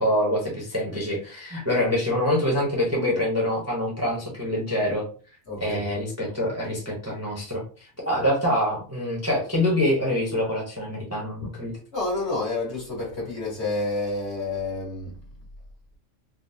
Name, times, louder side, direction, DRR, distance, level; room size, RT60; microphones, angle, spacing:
voice 1, 0.0-5.1 5.6-7.6 8.1-11.7, left 1 dB, 15° right, 0.7 m, -25 dB
voice 2, 5.5-5.8 11.9-15.1, left 2 dB, 60° left, 1.7 m, -29 dB
3.6 x 2.1 x 2.6 m
omnidirectional pair, 1.3 m